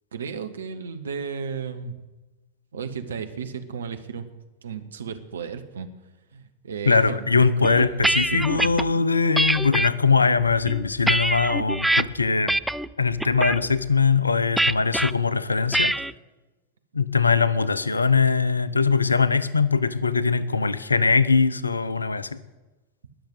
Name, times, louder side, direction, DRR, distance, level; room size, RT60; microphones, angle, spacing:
voice 1, 0.1-1.9 2.7-4.3 4.6-5.9 6.3-8.7, right 6 dB, 65° right, 9 dB, 1.3 m, -34 dB
voice 2, 6.9-12.6 13.0-15.9 16.9-22.4, left 4 dB, 80° left, 18 dB, 0.7 m, -21 dB
sound 1, 7.6-8.8 9.4-9.9 10.5-12.0 12.5-12.9 13.2-13.6 14.6-15.1 15.7-16.1, right 1 dB, ahead, 0.4 m, -23 dB
20.5 x 7.1 x 8.1 m, 1.1 s
figure-of-eight pair, 90°, 0 cm